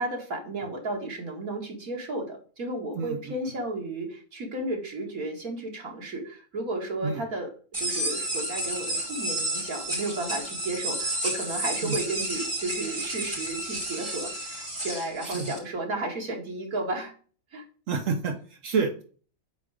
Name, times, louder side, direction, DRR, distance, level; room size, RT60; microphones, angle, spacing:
voice 1, 0.0-7.5 7.8-17.1 17.5-17.6, right 2 dB, 80° right, 0 dB, 2.5 m, -33 dB
voice 2, 2.9-3.3 7.0-7.2 11.8-11.9 15.2-15.5 17.9-19.0, right 5 dB, 65° right, 5 dB, 1.3 m, -29 dB
sound 1, 7.7-15.6, right 1 dB, 45° right, 4.6 m, -31 dB
5.9 x 4.8 x 5.0 m, 0.41 s
omnidirectional pair, 1.5 m